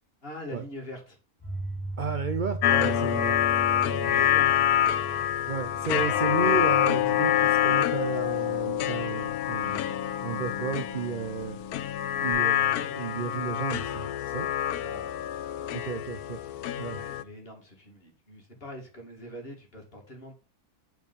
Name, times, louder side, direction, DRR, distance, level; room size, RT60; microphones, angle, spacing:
voice 1, 0.2-1.2 3.9-5.2 14.7-15.2 15.6-15.7 16.8-20.3, left 1 dB, 40° left, 2.4 m, -43 dB
sound 1, 1.4-12.3, right 1 dB, 20° left, 2.5 m, -39 dB
voice 2, 2.0-3.3 5.5-11.6 12.2-14.5 15.7-16.4 16.8-17.0, right 6 dB, 50° right, 0.6 m, -33 dB
sound 2, 2.6-17.2, left 11 dB, 85° left, 1.1 m, -26 dB
7.1 x 4.7 x 5.3 m
omnidirectional pair, 1.6 m